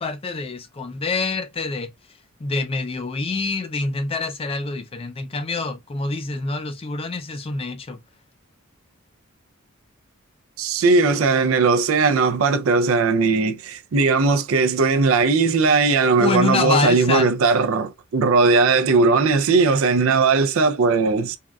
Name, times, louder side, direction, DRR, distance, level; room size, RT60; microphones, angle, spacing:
voice 1, 0.0-1.9 2.4-8.0 16.2-17.3, left 3 dB, 30° left, 0.4 m, -26 dB
voice 2, 10.6-21.4, right 4 dB, 75° right, 0.5 m, -18 dB
3.6 x 2.3 x 2.2 m
head